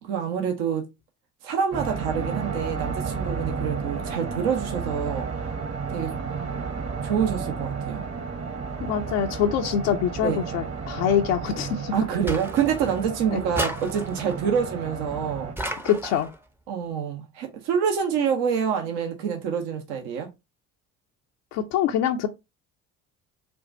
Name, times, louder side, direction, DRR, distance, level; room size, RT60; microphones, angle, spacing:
voice 1, 0.0-0.9 1.4-5.3 5.9-6.1 7.0-8.0 10.2-10.4 11.9-15.5 16.7-20.3, right 7 dB, 70° right, 1.0 m, -26 dB
sound 1, 1.7-15.5, right 5 dB, 35° right, 1.1 m, -32 dB
voice 2, 8.8-11.9 13.3-13.4 15.8-16.3 21.5-22.3, left 9 dB, 70° left, 0.7 m, -24 dB
sound 2, 12.3-13.1 13.5-14.4 15.6-16.4, right 1 dB, 5° right, 0.6 m, -33 dB
4.6 x 2.3 x 2.6 m
hypercardioid pair, 50°, 42 cm